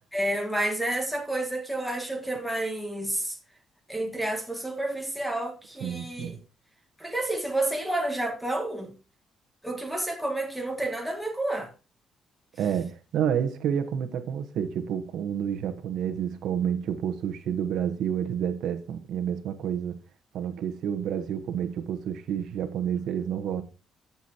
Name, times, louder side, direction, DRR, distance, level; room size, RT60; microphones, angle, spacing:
voice 1, 0.1-3.4 3.9-6.4 7.0-8.9 9.6-11.7, right 1 dB, ahead, 1.6 m, -30 dB
voice 2, 5.8-6.4 12.6-20.0 20.3-23.6, right 8 dB, 75° right, 1.1 m, -29 dB
14.0 x 7.0 x 2.9 m
cardioid pair, 170°, 0 cm